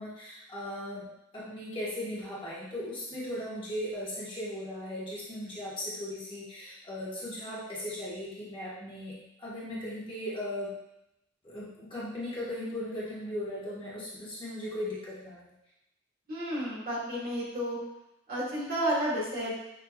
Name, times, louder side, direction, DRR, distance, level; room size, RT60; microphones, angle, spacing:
voice 1, 0.0-10.8 11.4-15.5, left 1 dB, 25° left, -8 dB, 1.2 m, -38 dB
voice 2, 16.3-17.8 18.3-19.5, equal, 50° right, -6 dB, 1.4 m, -31 dB
6.1 x 2.8 x 2.3 m, 0.85 s
head